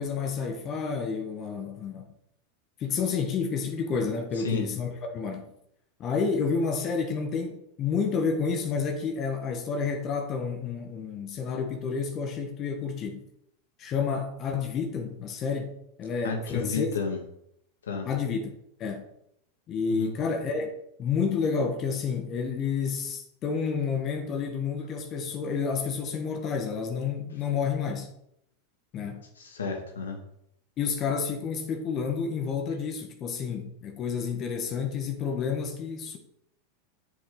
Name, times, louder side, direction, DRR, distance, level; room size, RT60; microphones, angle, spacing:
voice 1, 0.0-2.1 2.8-5.4 6.0-13.2 13.8-16.9 18.1-18.5 18.8-19.1 19.7-28.1 28.9-29.2 30.8-36.2, left 5 dB, 40° left, 1.5 m, -30 dB
voice 2, 16.2-17.2 17.8-18.1 19.9-20.1 29.4-30.2, left 5 dB, 80° left, 2.1 m, -32 dB
7.7 x 7.0 x 4.0 m
hypercardioid pair, 90°, 0 cm